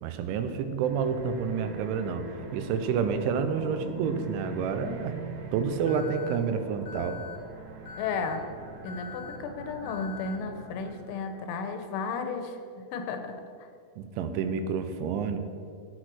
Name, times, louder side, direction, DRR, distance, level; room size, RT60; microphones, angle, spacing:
voice 1, 0.0-2.2 2.5-5.2 5.5-7.2 14.0-15.4, right 6 dB, 90° right, 8 dB, 3.2 m, -29 dB
sound 1, 0.8-11.4, right 3 dB, 70° right, 3.3 m, -42 dB
Alarm, 5.9-6.4 6.9-7.4 7.9-8.4 8.9-9.4 9.9-10.4, left 8 dB, 65° left, 2.7 m, -43 dB
voice 2, 8.0-8.5 8.8-13.7, left 4 dB, 80° left, 7 dB, 3.4 m, -34 dB
14.5 x 6.3 x 6.2 m, 2.2 s
omnidirectional pair, 5.5 m